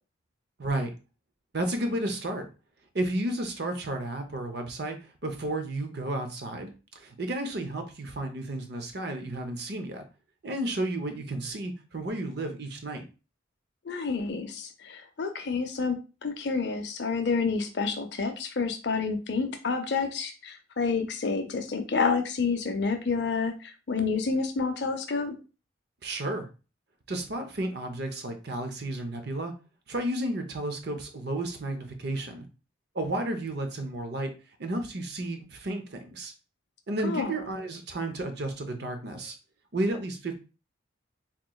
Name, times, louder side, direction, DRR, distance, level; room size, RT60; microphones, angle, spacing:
voice 1, 0.6-0.9 1.5-2.5 2.9-10.0 10.4-13.1 26.0-26.5 27.1-29.5 29.9-32.5 32.9-34.3 34.6-36.3 36.9-39.3 39.7-40.4, right 1 dB, 55° right, 6 dB, 0.6 m, -32 dB
voice 2, 13.8-25.3 37.0-37.4, left 4 dB, 60° left, 7 dB, 0.5 m, -29 dB
3.7 x 2.9 x 2.3 m, 0.32 s
head